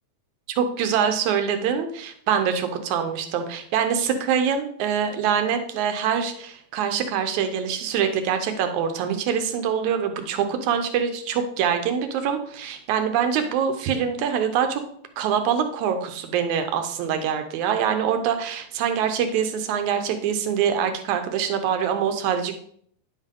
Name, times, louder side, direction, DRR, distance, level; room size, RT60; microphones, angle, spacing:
voice 1, 0.6-14.8 15.2-22.5, right 7 dB, 80° right, 7 dB, 2.2 m, -24 dB
10.0 x 5.5 x 3.7 m, 0.64 s
omnidirectional pair, 3.4 m